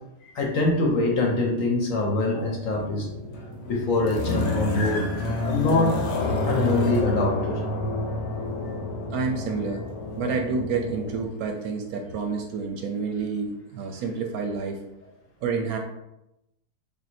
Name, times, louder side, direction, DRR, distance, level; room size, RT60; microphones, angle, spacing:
voice 1, 0.2-3.1 3.7-5.1 5.4-6.0 6.5-7.6, left 2 dB, 60° left, 0 dB, 1.0 m, -24 dB
sound 1, 2.7-11.2, left 2 dB, 85° left, 1.4 m, -29 dB
voice 2, 9.1-9.8 10.2-14.8 15.4-15.8, right 5 dB, 70° right, 3 dB, 0.9 m, -29 dB
3.7 x 2.7 x 4.1 m, 0.88 s
omnidirectional pair, 1.8 m